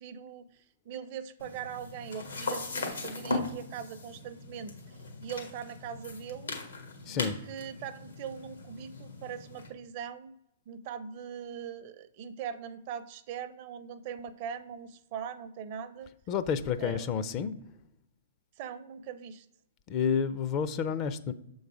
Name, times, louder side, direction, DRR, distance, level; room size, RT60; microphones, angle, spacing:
voice 1, 0.0-6.5 7.1-10.3 10.7-16.1 16.8-17.1 18.6-19.5, right 8 dB, 45° right, 0.5 m, -41 dB
sound 1, 1.4-9.7, left 2 dB, 90° left, 1.5 m, -39 dB
voice 2, 7.1-7.4 16.3-17.6 19.9-21.3, left 7 dB, 35° left, 0.5 m, -30 dB
6.6 x 3.9 x 4.9 m
hypercardioid pair, 120°, 0 cm